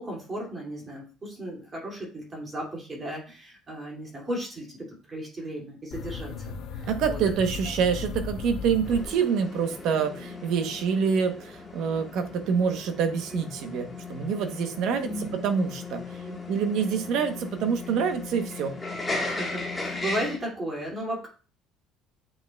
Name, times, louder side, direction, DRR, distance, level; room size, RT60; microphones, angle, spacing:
voice 1, 0.0-6.3 6.7-7.2 15.0-15.3 16.2-16.4 19.2-21.3, right 1 dB, 20° right, -2 dB, 2.4 m, -35 dB
sound 1, 5.9-9.7, left 5 dB, 55° left, 0.7 m, -36 dB
voice 2, 6.9-16.0 16.5-18.8, right 6 dB, 60° right, 7 dB, 0.9 m, -26 dB
sound 2, 8.8-20.4, left 3 dB, 10° left, 1.4 m, -37 dB
8.4 x 5.5 x 2.3 m, 0.36 s
cardioid pair, 165°, 0 cm